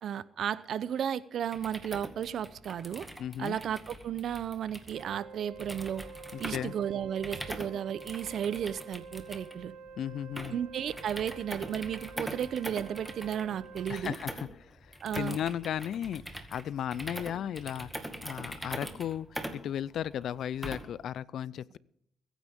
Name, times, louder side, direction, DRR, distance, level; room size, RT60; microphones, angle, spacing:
voice 1, 0.0-3.1 3.4-6.1 6.4-9.7 10.5-14.2 15.0-15.4, right 9 dB, 65° right, 0.7 m, -34 dB
sound 1, 1.4-21.0, right 1 dB, 5° right, 2.0 m, -43 dB
voice 2, 3.2-3.6 6.3-6.7 10.0-10.6 13.9-17.9 18.2-21.8, left 10 dB, 70° left, 0.5 m, -35 dB
Wind instrument woodwind instrument, 4.9-14.1, right 5 dB, 80° right, 4.4 m, -48 dB
22.0 x 10.0 x 3.6 m
cardioid pair, 90°, 0 cm